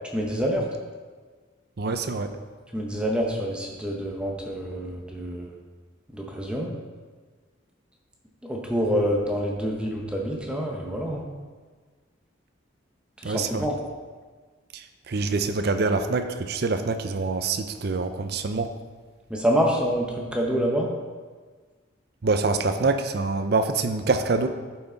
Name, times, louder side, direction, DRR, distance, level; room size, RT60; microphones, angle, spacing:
voice 1, 0.1-0.6 2.7-5.6 6.1-6.7 8.4-11.3 13.2-13.7 19.3-20.9, equal, 5° right, -1 dB, 0.9 m, -27 dB
voice 2, 1.8-2.3 13.2-13.7 15.1-18.7 22.2-24.5, right 3 dB, 55° right, 8 dB, 0.6 m, -25 dB
11.0 x 5.8 x 4.0 m, 1.4 s
head